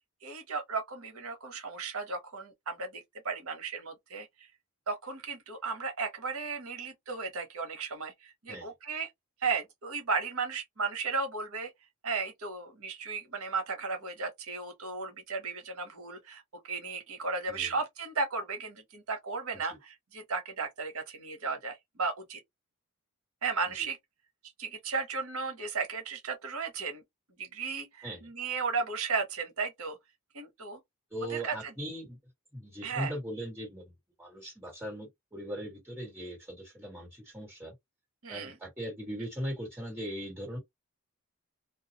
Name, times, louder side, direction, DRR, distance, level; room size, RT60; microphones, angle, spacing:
voice 1, 0.2-4.5 4.9-9.1 9.4-11.7 12.0-22.4 23.4-24.0 24.6-27.0 27.4-30.0 30.3-30.8 31.3-31.7 32.8-33.1 38.2-38.6, right 4 dB, 75° right, 1.0 m, -35 dB
voice 2, 31.1-32.2 32.5-33.9 34.2-37.7 38.3-40.6, equal, 10° right, 1.6 m, -39 dB
2.4 x 2.3 x 2.8 m
head